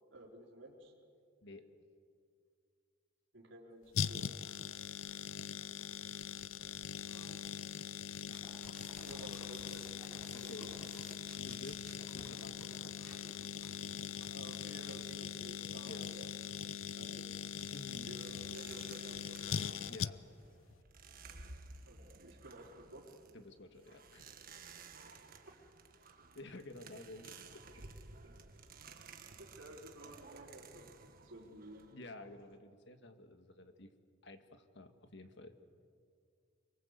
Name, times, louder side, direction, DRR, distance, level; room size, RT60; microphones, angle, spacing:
voice 1, 0.1-0.9 3.3-4.3 7.1-7.6 9.0-10.0 10.3-10.8 14.3-16.3 17.0-17.3 18.1-19.6 21.9-23.1 24.9-25.0 27.7-27.9 28.2-28.3 28.8-29.0 29.4-32.0, right 1 dB, 70° right, -1 dB, 4.1 m, -54 dB
sound 1, 3.9-20.5 20.7-20.8, left 7 dB, 90° left, 0.6 m, -42 dB
sound 2, 8.2-15.2, right 1 dB, 5° left, 6.9 m, -57 dB
voice 2, 8.3-8.7 10.3-10.7 11.3-11.9 12.1-12.8 15.8-16.1 17.7-18.1 19.9-20.2 23.3-24.4 26.3-27.6 31.9-33.9 34.2-35.5, left 2 dB, 65° left, 7 dB, 1.8 m, -52 dB
sound 3, 17.6-32.6, right 4 dB, 50° right, 1.6 m, -55 dB
25.5 x 23.5 x 8.2 m, 2.3 s
head